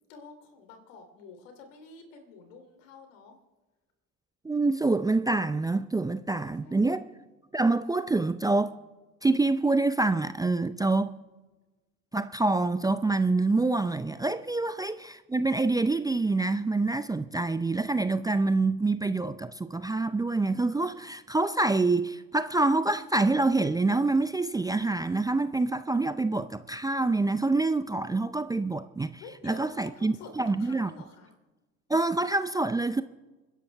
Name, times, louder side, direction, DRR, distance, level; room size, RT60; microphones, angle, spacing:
voice 1, 0.1-3.4 6.3-7.1 14.6-14.7 29.2-31.3, left 4 dB, 75° left, 3.0 m, -49 dB
voice 2, 4.4-7.0 7.5-8.8 9.2-11.1 12.1-30.9 31.9-33.0, right 3 dB, 10° right, 0.4 m, -26 dB
28.5 x 11.0 x 3.4 m
hypercardioid pair, 70°, 39 cm